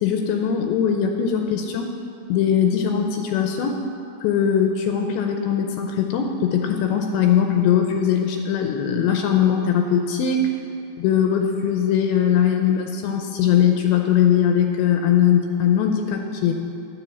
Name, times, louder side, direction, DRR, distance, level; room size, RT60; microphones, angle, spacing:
voice 1, 0.0-1.9 2.3-3.8 4.2-10.5 11.0-16.5, left 8 dB, 80° left, 3 dB, 2.8 m, -20 dB
11.5 x 7.0 x 7.1 m, 2.7 s
omnidirectional pair, 5.3 m